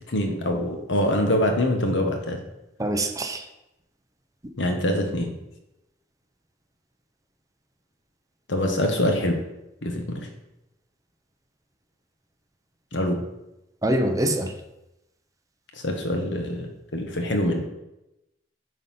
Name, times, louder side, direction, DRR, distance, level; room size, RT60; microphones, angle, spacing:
voice 1, 0.1-2.4 4.6-5.3 8.5-9.4 9.8-10.3 12.9-13.2 15.8-17.6, left 1 dB, 75° left, 4 dB, 1.3 m, -24 dB
voice 2, 2.8-3.4 13.8-14.5, right 1 dB, 20° right, 6 dB, 0.7 m, -24 dB
8.9 x 4.1 x 5.6 m, 0.93 s
head